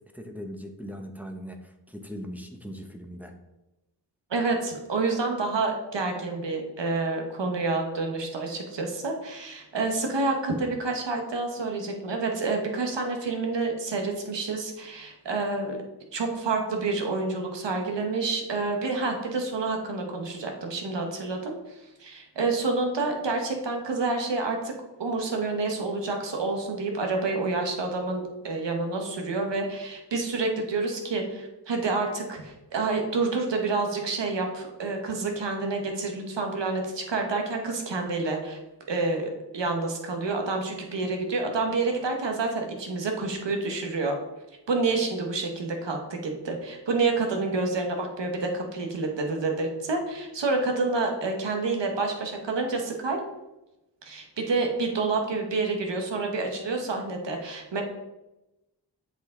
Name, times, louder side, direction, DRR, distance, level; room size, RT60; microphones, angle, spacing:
voice 1, 0.1-3.3, equal, 5° right, 4 dB, 1.0 m, -39 dB
voice 2, 4.3-15.8 16.1-21.5 22.0-24.7 25.0-38.6 38.9-44.1 44.7-53.2 54.0-57.8, right 3 dB, 75° right, 3 dB, 1.4 m, -28 dB
8.0 x 5.1 x 3.9 m, 0.98 s
wide cardioid pair, 75°, 43 cm